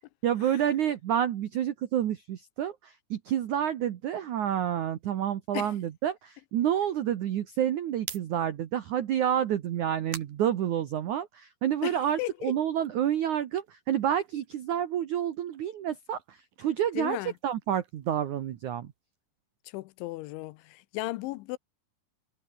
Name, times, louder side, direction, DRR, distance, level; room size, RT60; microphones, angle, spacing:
voice 1, 0.2-17.2 17.4-18.9, right 10 dB, 90° right, 1.7 m, -29 dB
sound 1, 7.9-11.4 11.8-14.7 15.0-19.2, right 10 dB, 55° right, 3.4 m, -49 dB
voice 2, 12.2-12.5 17.0-17.3 19.7-21.6, left 19 dB, 85° left, 3.0 m, -35 dB
omnidirectional pair, 5.5 m